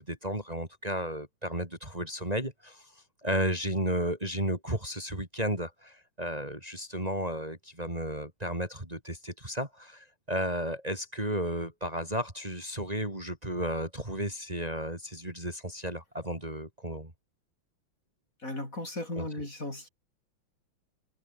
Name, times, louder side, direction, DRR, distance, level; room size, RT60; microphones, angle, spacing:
voice 1, 0.0-17.1 19.2-19.5, right 1 dB, 15° right, 4.5 m, -33 dB
voice 2, 18.4-19.9, left 1 dB, 40° left, 8.0 m, -36 dB
omnidirectional pair, 2.2 m